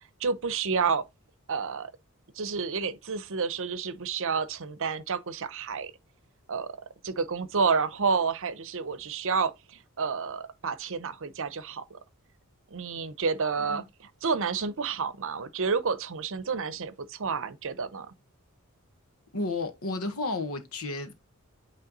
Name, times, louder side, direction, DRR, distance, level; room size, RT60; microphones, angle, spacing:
voice 1, 0.2-1.0 1.5-1.9 2.4-5.9 6.5-6.7 7.0-12.0 12.7-18.1, right 5 dB, 65° right, 0.7 m, -30 dB
voice 2, 19.3-21.1, left 3 dB, 75° left, 1.3 m, -32 dB
8.8 x 3.3 x 3.9 m
head